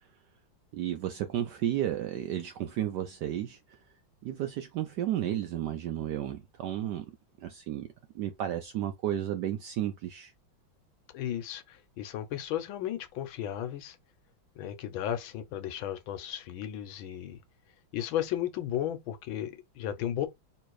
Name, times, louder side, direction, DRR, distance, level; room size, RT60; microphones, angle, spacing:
voice 1, 0.7-3.6 4.2-7.1 7.4-7.9 8.1-10.3, right 11 dB, 75° right, 0.9 m, -32 dB
voice 2, 11.1-14.0 14.6-17.4 17.9-20.3, left 11 dB, 75° left, 1.5 m, -34 dB
3.3 x 3.1 x 4.6 m
omnidirectional pair, 2.3 m